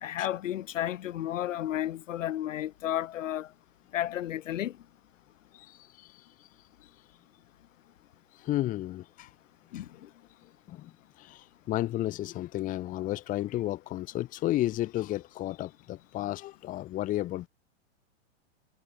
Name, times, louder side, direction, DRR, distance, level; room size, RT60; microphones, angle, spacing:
voice 1, 0.0-3.5 3.9-4.7 9.7-9.9, left 12 dB, 90° left, 0.9 m, -32 dB
voice 2, 5.5-6.3 8.3-9.3 9.7-10.1 10.4-17.5, left 15 dB, 20° left, 0.9 m, -33 dB
hypercardioid pair, 140°, 37 cm